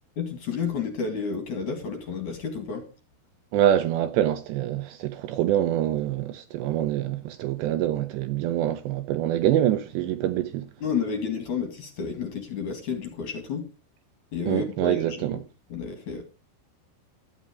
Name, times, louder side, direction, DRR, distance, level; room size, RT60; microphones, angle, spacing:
voice 1, 0.2-2.9 10.8-13.7 14.3-15.4 15.7-16.2, left 6 dB, 50° left, 2.8 m, -31 dB
voice 2, 3.5-10.7 14.5-15.4, right 11 dB, 80° right, 2.7 m, -25 dB
13.0 x 10.0 x 5.1 m
omnidirectional pair, 5.6 m